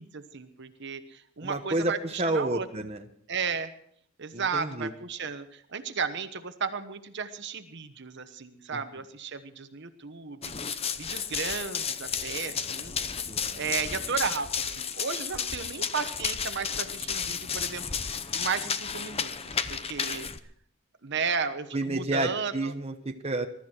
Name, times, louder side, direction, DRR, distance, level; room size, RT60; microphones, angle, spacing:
voice 1, 0.0-2.7 3.3-3.7 4.2-13.2 13.5-19.3 19.7-20.3 21.0-22.7, right 5 dB, 55° right, 9 dB, 1.1 m, -34 dB
voice 2, 1.4-3.0 4.3-4.9 8.7-8.8 13.3-13.6 21.7-23.5, right 2 dB, 30° right, 4 dB, 1.0 m, -30 dB
Run, 10.4-20.4, left 7 dB, 30° left, 0.7 m, -32 dB
21.5 x 12.5 x 4.5 m, 0.63 s
head